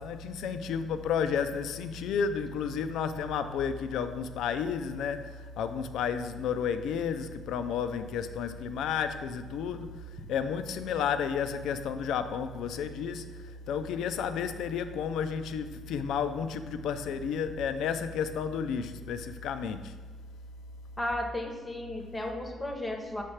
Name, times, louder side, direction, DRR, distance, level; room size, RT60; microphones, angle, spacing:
voice 1, 0.0-20.0, left 7 dB, 80° left, 0.4 m, -32 dB
voice 2, 21.0-23.2, left 1 dB, 20° left, 0.7 m, -34 dB
6.3 x 3.3 x 5.6 m
cardioid pair, 90°, 0 cm